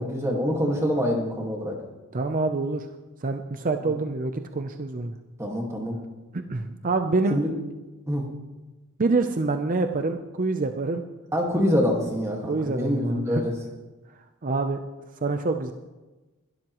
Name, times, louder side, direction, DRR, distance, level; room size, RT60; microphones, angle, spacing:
voice 1, 0.0-1.7 3.8-3.9 5.4-6.0 7.3-7.5 8.1-8.2 11.3-13.5, equal, 15° right, 0 dB, 1.8 m, -25 dB
voice 2, 2.1-2.9 3.2-5.1 6.5-7.4 9.0-11.0 12.5-13.4 14.4-14.8 15.2-15.7, right 3 dB, 40° right, 6 dB, 0.6 m, -26 dB
21.5 x 12.5 x 3.1 m, 1.2 s
head